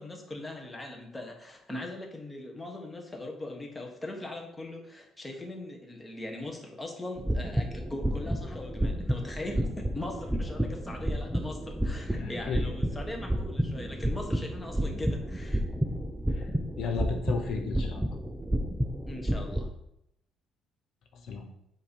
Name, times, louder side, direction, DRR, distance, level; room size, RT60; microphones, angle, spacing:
voice 1, 0.0-15.6 19.1-19.7, left 2 dB, 10° left, 2 dB, 1.1 m, -40 dB
sound 1, 7.2-19.7, equal, 5° right, 0.5 m, -31 dB
voice 2, 12.1-12.7 16.3-16.4 16.8-18.0 21.2-21.5, left 5 dB, 60° left, 4 dB, 0.7 m, -34 dB
7.5 x 2.8 x 5.3 m, 0.80 s
cardioid pair, 130°, 0 cm